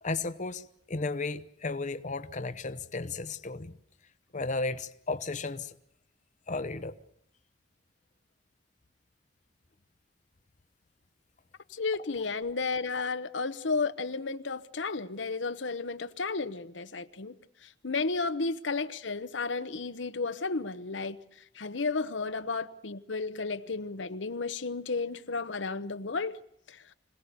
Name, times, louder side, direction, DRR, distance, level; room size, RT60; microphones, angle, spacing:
voice 1, 0.0-3.7 4.3-5.7 6.5-7.0, left 3 dB, 40° left, 0.9 m, -34 dB
voice 2, 11.7-17.4 17.6-26.4 26.7-26.8, left 4 dB, 85° left, 1.0 m, -33 dB
26.0 x 18.0 x 6.8 m
head